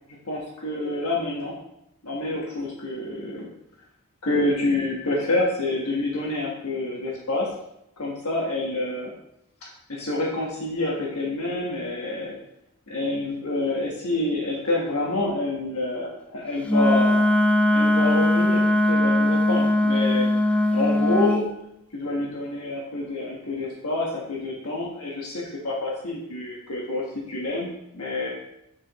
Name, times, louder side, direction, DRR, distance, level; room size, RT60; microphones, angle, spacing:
voice 1, 0.2-1.5 2.0-3.5 4.2-7.5 8.0-9.1 9.9-12.3 12.9-17.3 17.7-18.6 18.9-21.5 21.9-27.7 27.9-28.3, left 2 dB, 75° left, -3 dB, 1.3 m, -27 dB
Wind instrument woodwind instrument, 16.7-21.4, left 1 dB, 5° left, 0.4 m, -20 dB
7.6 x 7.5 x 3.1 m, 0.81 s
head